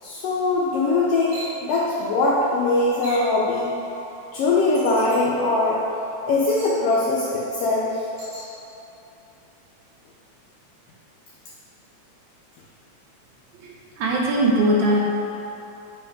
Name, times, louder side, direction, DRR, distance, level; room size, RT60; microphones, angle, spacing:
voice 1, 0.0-3.7 4.3-5.8 6.3-8.0, left 2 dB, 75° left, -6 dB, 1.5 m, -21 dB
sound 1, 1.3-1.6 3.0-3.3 4.7-5.2 6.5-6.8 8.2-8.5, right 2 dB, 55° right, 2.3 m, -38 dB
voice 2, 13.6-15.0, right 1 dB, 80° right, -3 dB, 2.1 m, -21 dB
7.0 x 3.4 x 5.0 m, 3.0 s
omnidirectional pair, 3.3 m